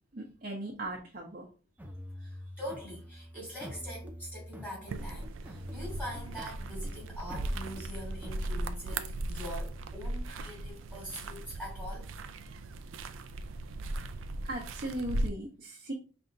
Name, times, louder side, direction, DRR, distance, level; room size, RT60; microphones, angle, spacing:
voice 1, 0.1-1.5 14.4-15.9, right 1 dB, 45° right, 0.8 m, -38 dB
sound 1, 1.8-8.6, equal, 10° right, 0.4 m, -45 dB
voice 2, 2.2-12.1, equal, 10° left, 2.5 m, -43 dB
sound 2, 4.9-15.3, right 2 dB, 75° right, 0.4 m, -38 dB
5.3 x 3.5 x 2.6 m
head